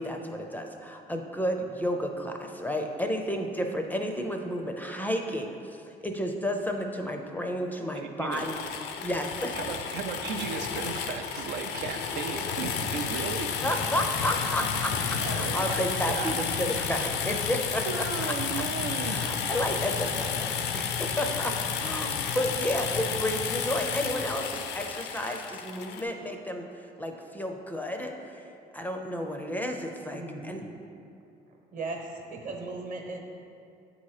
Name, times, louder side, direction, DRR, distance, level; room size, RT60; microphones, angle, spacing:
voice 1, 0.0-8.6 9.0-9.6 13.6-14.9 15.3-18.1 19.1-28.4 28.7-30.6, equal, 10° left, 3 dB, 0.4 m, -32 dB
voice 2, 7.9-8.4 9.5-13.6 15.2-16.4 17.8-19.3, right 6 dB, 90° right, 5 dB, 0.4 m, -35 dB
sound 1, 8.3-26.0, left 7 dB, 85° left, 0.5 m, -31 dB
voice 3, 30.1-30.8 31.7-33.2, right 3 dB, 50° right, 2 dB, 1.0 m, -37 dB
8.2 x 2.8 x 4.7 m, 2.6 s
cardioid pair, 110°, 17 cm